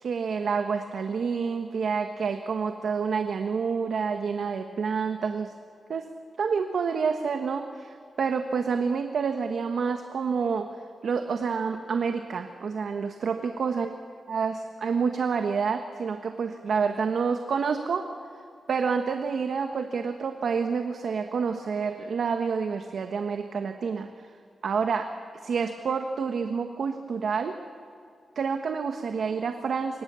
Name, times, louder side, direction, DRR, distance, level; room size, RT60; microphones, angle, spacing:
voice 1, 0.0-5.5 5.9-6.1 6.4-10.7 11.0-13.9 14.3-18.1 18.7-24.1 24.6-25.1 25.4-27.6 28.3-30.0, right 5 dB, 70° right, 6 dB, 1.3 m, -28 dB
27.5 x 25.0 x 7.0 m, 2.3 s
wide cardioid pair, 135°, 0 cm